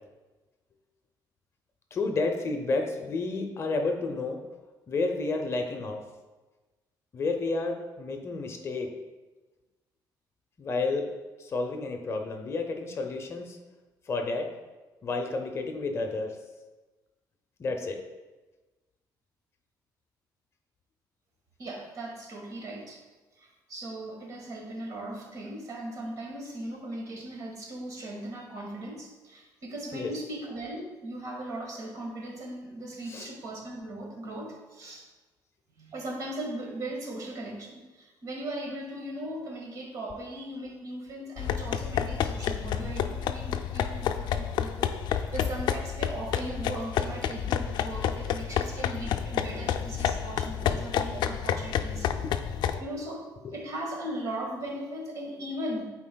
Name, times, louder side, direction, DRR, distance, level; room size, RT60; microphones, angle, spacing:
voice 1, 1.9-4.4 4.9-6.1 7.1-8.9 10.6-11.1 11.4-13.6 14.1-14.5 15.0-16.4 17.6-18.0 29.9-30.1 33.1-33.3 51.2-51.3 52.1-52.2 52.6-52.8 53.4-53.6, left 3 dB, 35° left, 4 dB, 0.7 m, -31 dB
voice 2, 21.6-23.0 23.4-35.0 35.8-52.1 52.7-53.3 53.5-55.8, right 1 dB, 50° right, 0 dB, 1.7 m, -38 dB
sound 1, 41.4-52.8, left 9 dB, 70° left, 0.4 m, -30 dB
11.0 x 4.6 x 2.3 m, 1.2 s
cardioid pair, 135°, 8 cm